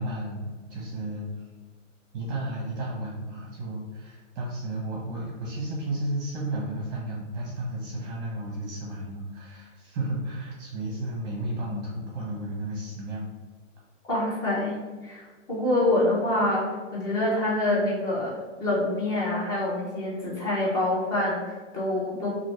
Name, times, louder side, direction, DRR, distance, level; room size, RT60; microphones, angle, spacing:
voice 1, 0.0-1.3 2.1-13.2, right 1 dB, 35° right, -4 dB, 0.7 m, -33 dB
voice 2, 14.1-14.7 15.0-22.3, left 1 dB, 10° left, -5 dB, 0.5 m, -26 dB
3.0 x 2.5 x 3.0 m, 1.3 s
hypercardioid pair, 140°, 38 cm